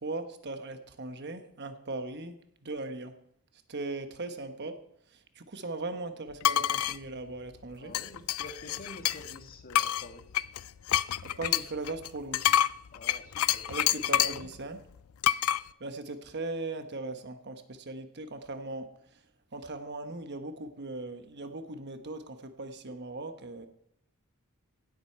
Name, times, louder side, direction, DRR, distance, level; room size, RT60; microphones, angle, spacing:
voice 1, 0.0-2.4 2.6-3.1 3.7-4.7 5.4-7.9 11.2-12.6 13.7-14.8 15.8-18.9 19.5-23.7, right 2 dB, 55° right, 8 dB, 1.1 m, -38 dB
sound 1, 6.4-7.0 7.9-9.4 9.7-14.5 15.2-15.6, left 11 dB, 75° left, 0.4 m, -27 dB
voice 2, 7.8-10.3 12.9-14.5, left 1 dB, 45° left, 5 dB, 1.7 m, -48 dB
17.0 x 7.9 x 4.5 m, 0.76 s
head